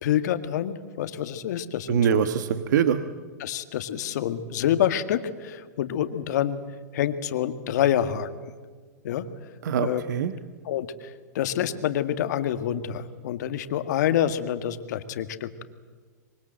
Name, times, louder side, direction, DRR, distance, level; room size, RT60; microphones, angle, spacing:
voice 1, 0.0-2.3 3.4-6.6 6.9-8.5 9.0-9.3 9.8-10.0 10.6-15.6, left 10 dB, 65° left, 9 dB, 1.9 m, -27 dB
voice 2, 1.9-3.0 9.6-10.3, right 8 dB, 70° right, 10 dB, 1.4 m, -23 dB
25.0 x 24.0 x 7.8 m, 1.5 s
hypercardioid pair, 125°, 10 cm